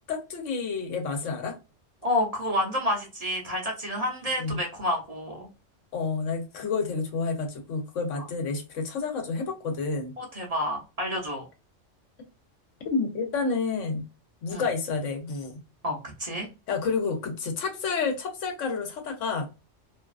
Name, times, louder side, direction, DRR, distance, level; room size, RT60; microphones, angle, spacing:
voice 1, 0.1-1.6 4.4-4.6 5.9-10.1 12.8-14.0 14.4-15.5 16.7-19.5, left 4 dB, 75° left, 4 dB, 1.1 m, -29 dB
voice 2, 2.0-5.5 8.2-8.3 10.2-11.5 14.5-14.6 15.8-16.5, left 1 dB, 40° right, 0 dB, 0.6 m, -29 dB
2.6 x 2.3 x 2.3 m, 0.28 s
omnidirectional pair, 1.3 m